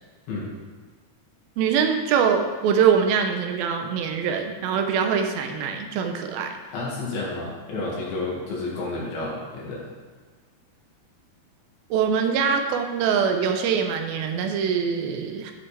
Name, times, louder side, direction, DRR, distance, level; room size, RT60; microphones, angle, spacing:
voice 1, 1.6-6.5 11.9-15.5, right 7 dB, 85° right, 5 dB, 2.5 m, -23 dB
voice 2, 6.7-9.9, left 2 dB, 80° left, -4 dB, 3.8 m, -30 dB
10.5 x 6.8 x 3.4 m, 1.5 s
omnidirectional pair, 4.2 m